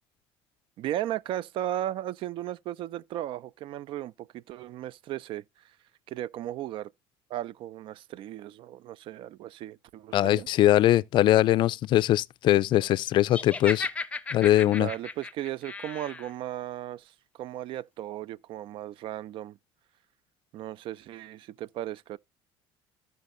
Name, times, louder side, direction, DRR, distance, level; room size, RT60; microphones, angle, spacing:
voice 1, 0.8-5.4 6.1-6.9 7.3-10.5 14.6-19.6 20.5-22.2, right 13 dB, 55° right, 0.5 m, -36 dB
voice 2, 10.1-13.9 14.3-14.9, left 14 dB, 50° left, 0.4 m, -21 dB
Laughter, 13.3-16.3, left 3 dB, 15° left, 0.7 m, -35 dB
15.0 x 5.3 x 2.6 m
cardioid pair, 125°, 10 cm